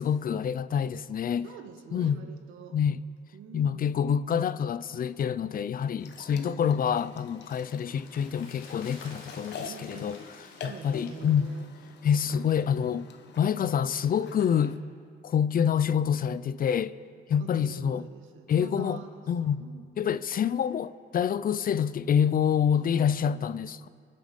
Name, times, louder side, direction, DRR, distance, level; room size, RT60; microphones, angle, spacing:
voice 1, 0.0-1.5 1.9-2.2 2.7-3.0 3.5-10.2 10.6-11.5 12.0-13.1 13.4-14.8 15.2-16.9 17.3-18.0 18.5-19.0 19.3-19.6 20.0-23.9, left 8 dB, 45° left, 0.5 m, -27 dB
voice 2, 1.4-2.8 3.3-4.0 6.3-6.9 9.6-10.2 10.6-11.7 17.4-19.3 19.6-19.9 22.8-23.6, right 7 dB, 90° right, 1.4 m, -46 dB
sound 1, 6.0-14.8, left 5 dB, 60° left, 1.2 m, -46 dB
sound 2, 7.0-12.4 12.7-12.8, left 3 dB, 85° left, 3.0 m, -51 dB
23.5 x 9.2 x 5.3 m
cardioid pair, 90°, 20 cm